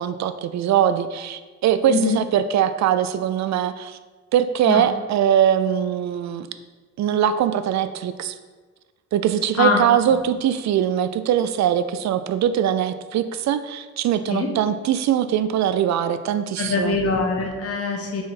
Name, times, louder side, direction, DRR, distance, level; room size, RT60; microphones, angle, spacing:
voice 1, 0.0-4.0 4.3-6.5 7.0-8.3 9.1-17.0, right 9 dB, 65° right, 11 dB, 0.5 m, -21 dB
voice 2, 16.6-18.2, left 4 dB, 50° left, 2 dB, 1.2 m, -22 dB
4.8 x 4.1 x 5.9 m, 1.4 s
cardioid pair, 90°, 30 cm